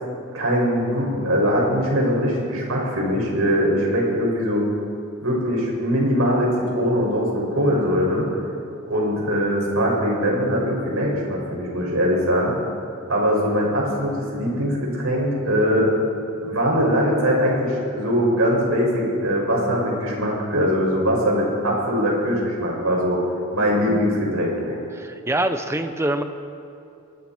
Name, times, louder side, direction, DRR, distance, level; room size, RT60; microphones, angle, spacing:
voice 1, 0.3-4.6 5.2-8.3 8.9-12.5 13.1-15.9 16.4-23.2 23.5-24.8, equal, 75° right, -2 dB, 6.7 m, -21 dB
voice 2, 24.9-26.2, right 1 dB, 10° right, 7 dB, 1.1 m, -24 dB
25.5 x 22.0 x 4.6 m, 2.7 s
head